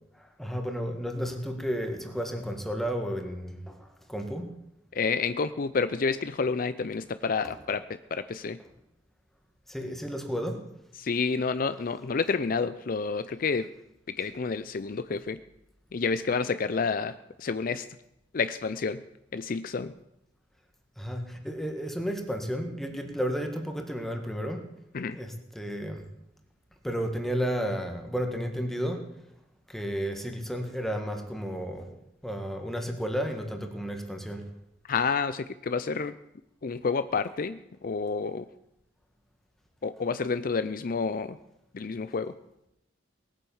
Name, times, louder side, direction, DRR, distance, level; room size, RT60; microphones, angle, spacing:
voice 1, 0.1-4.6 7.4-7.5 9.7-10.7 21.0-24.7 25.1-26.0 26.8-29.1 29.7-32.0 32.2-34.5, equal, ahead, 4 dB, 1.7 m, -32 dB
voice 2, 4.9-7.8 8.1-8.6 11.0-13.7 14.1-15.4 15.9-17.9 18.3-19.0 19.3-19.9 24.9-25.2 34.9-36.1 36.6-38.5 39.8-41.4 41.7-42.3, left 5 dB, 50° left, 13 dB, 0.5 m, -29 dB
19.0 x 9.1 x 7.1 m, 0.83 s
head